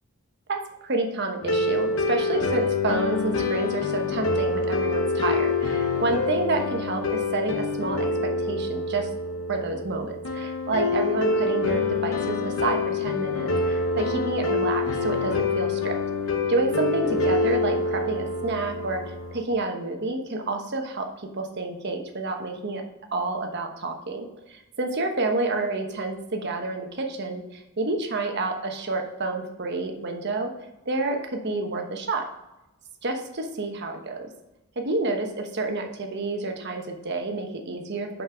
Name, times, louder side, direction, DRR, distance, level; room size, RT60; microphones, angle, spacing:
voice 1, 0.5-9.1 9.5-16.0 16.5-22.8 23.1-30.5 30.9-32.3 33.0-34.3 34.8-38.2, right 3 dB, 55° right, 3 dB, 1.1 m, -29 dB
sound 1, 1.4-19.4, left 3 dB, 80° left, 0.9 m, -26 dB
5.7 x 5.4 x 5.0 m, 0.97 s
head